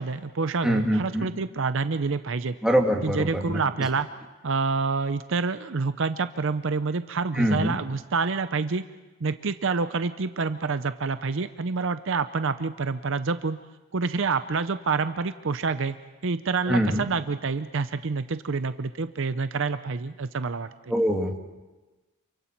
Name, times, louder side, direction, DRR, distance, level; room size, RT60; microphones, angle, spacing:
voice 1, 0.0-2.6 3.0-4.1 4.4-8.8 9.2-13.6 13.9-16.0 16.2-20.7, right 4 dB, 60° right, 11 dB, 0.6 m, -27 dB
voice 2, 0.6-1.3 2.6-3.6 7.4-7.8 16.7-17.0 20.9-21.4, equal, 5° right, 0 dB, 1.9 m, -24 dB
28.0 x 23.5 x 4.5 m, 1.2 s
head